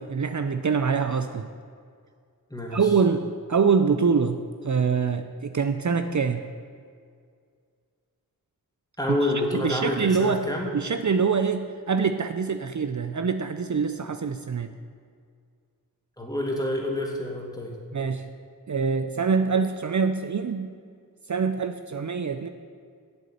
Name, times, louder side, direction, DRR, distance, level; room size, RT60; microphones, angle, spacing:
voice 1, 0.0-1.5 2.7-4.4 4.6-6.4 9.5-10.4 10.7-14.7 17.9-18.3 18.7-20.7 21.3-22.5, right 5 dB, 55° right, 8 dB, 0.6 m, -24 dB
voice 2, 2.5-2.9 9.0-10.8 16.2-17.7, left 1 dB, 10° left, -1 dB, 2.3 m, -28 dB
8.2 x 8.1 x 9.0 m, 2.1 s
wide cardioid pair, 55°, 35 cm